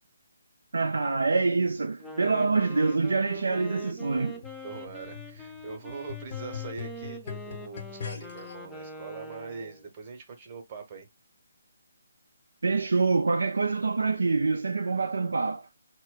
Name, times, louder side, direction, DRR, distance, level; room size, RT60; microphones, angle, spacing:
voice 1, 0.7-4.4 12.6-15.7, right 4 dB, 65° right, 0.3 m, -26 dB
Wind instrument woodwind instrument, 1.9-9.8, equal, 5° left, 0.4 m, -44 dB
sound 1, 4.1-8.5 9.3-9.4, left 9 dB, 40° left, 0.7 m, -41 dB
voice 2, 4.3-11.1 14.9-15.4, right 5 dB, 30° right, 0.9 m, -43 dB
2.2 x 2.2 x 3.7 m
figure-of-eight pair, 145°, 0 cm